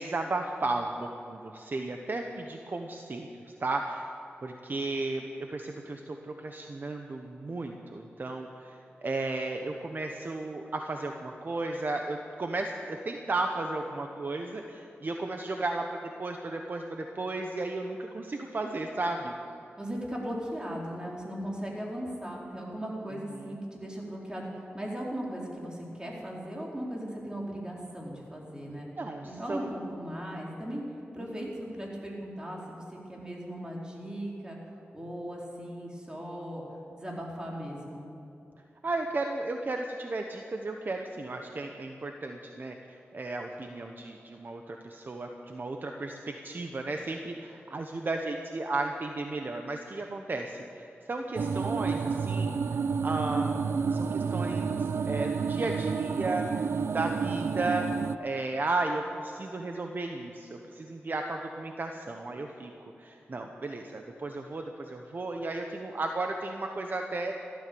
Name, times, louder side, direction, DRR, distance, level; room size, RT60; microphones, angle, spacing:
voice 1, 0.0-3.3 3.6-4.1 4.4-5.2 5.5-19.3 23.3-23.5 29.0-29.9 31.3-31.5 38.8-52.6 53.0-56.5 56.9-57.9 58.2-62.7 63.0-67.3, right 2 dB, 50° right, 3 dB, 1.1 m, -34 dB
voice 2, 19.8-28.9 29.2-30.8 31.1-34.6 34.9-36.6 36.9-38.1, equal, 20° right, -3 dB, 4.2 m, -38 dB
sound 1, 51.4-58.2, right 5 dB, 75° right, 0.4 m, -30 dB
16.0 x 13.0 x 7.0 m, 2.8 s
cardioid pair, 65°, 4 cm